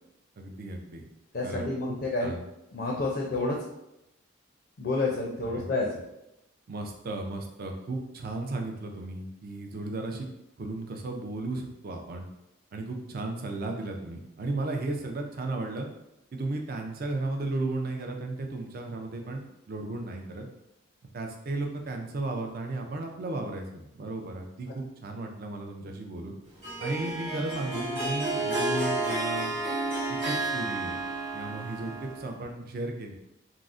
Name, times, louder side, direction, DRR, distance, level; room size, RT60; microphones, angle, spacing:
voice 1, 0.4-1.0 1.4-2.4 5.6-5.7 6.7-10.3 10.6-12.3 12.7-15.9 16.3-20.5 21.1-26.3 26.8-29.5 30.1-31.0 31.3-33.2, right 2 dB, 45° right, 2 dB, 0.4 m, -35 dB
voice 2, 1.3-2.3 2.7-3.6 4.8-5.9, left 2 dB, 50° left, -1 dB, 0.4 m, -29 dB
Harp, 26.6-32.4, right 2 dB, 25° right, 1.0 m, -31 dB
3.6 x 2.0 x 2.4 m, 0.87 s
head